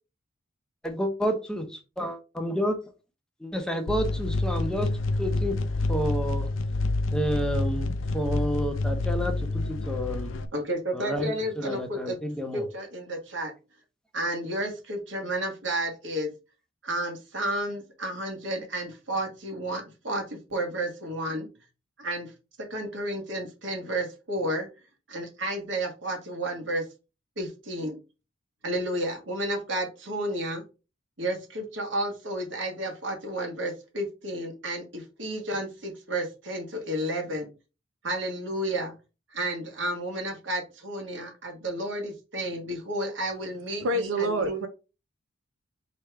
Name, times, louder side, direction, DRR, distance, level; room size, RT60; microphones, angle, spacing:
voice 1, 0.8-2.8 3.4-4.9 5.2-5.6 5.9-6.5 7.1-10.3 10.9-11.3 11.6-12.6, equal, 5° left, 0.6 m, -30 dB
sound 1, 3.9-10.5, left 2 dB, 75° left, 0.5 m, -28 dB
voice 2, 10.5-12.2 12.5-13.5 14.1-16.3 16.8-21.5 22.0-22.3 22.6-24.7 25.1-26.8 27.4-28.0 28.6-30.6 31.2-37.5 38.0-38.9 39.3-44.6, right 1 dB, 65° right, 1.4 m, -31 dB
voice 3, 43.8-44.7, right 1 dB, 85° right, 0.6 m, -26 dB
4.7 x 3.3 x 3.3 m
head